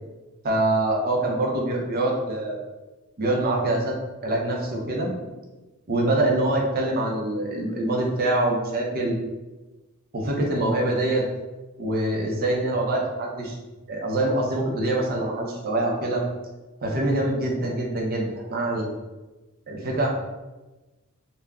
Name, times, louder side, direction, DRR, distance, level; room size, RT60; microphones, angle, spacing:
voice 1, 0.4-2.6 3.2-4.0 4.2-5.1 5.9-9.2 10.1-11.3 11.8-13.6 13.9-16.2 16.8-18.9 19.7-20.1, right 1 dB, 45° right, -1 dB, 0.5 m, -24 dB
3.4 x 2.1 x 2.3 m, 1.1 s
head